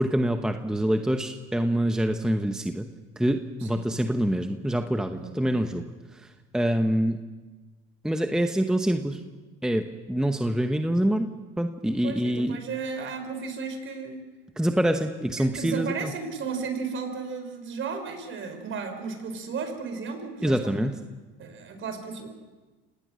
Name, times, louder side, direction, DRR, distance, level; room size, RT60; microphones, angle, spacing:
voice 1, 0.0-2.9 3.2-5.8 6.1-7.2 8.0-9.2 9.6-11.3 11.6-12.6 14.6-16.1 20.4-21.0, right 1 dB, ahead, 6 dB, 1.0 m, -25 dB
voice 2, 5.2-5.5 12.0-14.3 15.4-20.8 21.4-22.3, right 5 dB, 45° right, 6 dB, 5.0 m, -34 dB
26.5 x 18.5 x 6.3 m, 1.3 s
supercardioid pair, 110°, 29 cm